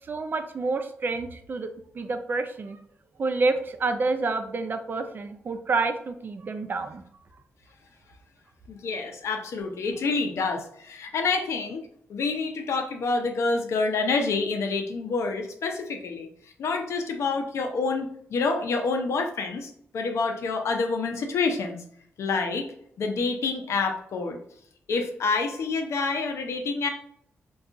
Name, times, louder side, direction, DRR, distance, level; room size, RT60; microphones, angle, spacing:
voice 1, 0.1-1.7 1.9-2.8 3.2-7.0, right 3 dB, 45° right, 8 dB, 0.4 m, -28 dB
voice 2, 8.7-11.8 12.1-16.3 16.6-21.8 22.2-22.7 23.0-24.4 24.9-26.9, left 4 dB, 80° left, 4 dB, 0.5 m, -27 dB
2.3 x 2.3 x 3.8 m, 0.68 s
cardioid pair, 95°, 5 cm